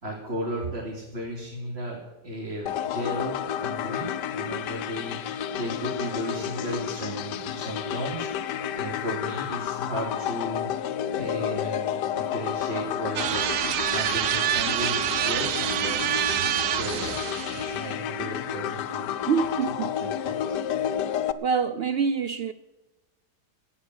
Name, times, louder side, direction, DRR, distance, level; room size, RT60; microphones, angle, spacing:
voice 1, 0.0-17.2 17.5-19.3 20.0-20.6, right 1 dB, 35° right, 3.3 m, -35 dB
sound 1, 2.7-21.3, left 9 dB, 90° left, 1.4 m, -31 dB
sound 2, 13.2-17.9, right 12 dB, 65° right, 0.9 m, -27 dB
voice 2, 19.3-19.9 21.4-22.5, right 6 dB, 90° right, 0.5 m, -25 dB
17.0 x 9.9 x 6.4 m
omnidirectional pair, 1.8 m